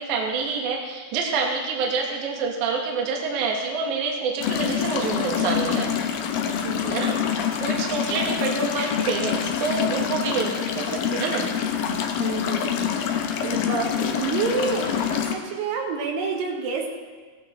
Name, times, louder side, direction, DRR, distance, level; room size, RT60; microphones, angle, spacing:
voice 1, 0.0-5.9 6.9-11.5, right 4 dB, 60° right, 0 dB, 2.3 m, -27 dB
sound 1, 4.4-15.3, left 8 dB, 75° left, 2.1 m, -26 dB
voice 2, 6.6-7.3 8.1-8.3 12.2-16.9, right 5 dB, 75° right, 1 dB, 3.1 m, -29 dB
17.5 x 11.5 x 3.2 m, 1.4 s
omnidirectional pair, 4.9 m